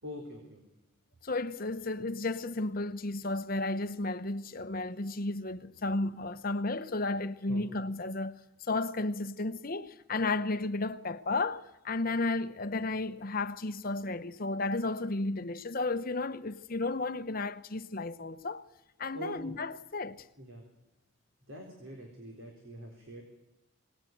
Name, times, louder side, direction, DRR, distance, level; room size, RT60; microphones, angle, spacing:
voice 1, 0.0-0.6 7.5-7.6 19.1-19.5 20.4-20.6 21.5-23.2, equal, 65° right, 4.1 m, -44 dB
voice 2, 1.2-18.7 19.0-20.2, left 2 dB, 40° left, 0.9 m, -33 dB
23.5 x 19.0 x 9.3 m
head